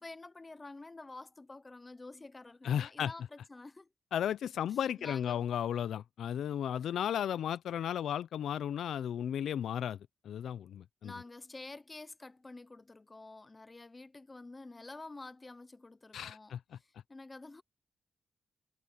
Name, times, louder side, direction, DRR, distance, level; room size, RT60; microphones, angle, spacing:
voice 1, 0.0-3.9 5.0-5.5 11.0-17.6, left 2 dB, 20° left, 0.7 m, -49 dB
voice 2, 2.6-3.1 4.1-11.1 16.1-16.8, left 9 dB, 80° left, 0.5 m, -34 dB
wide cardioid pair, 150°, 0 cm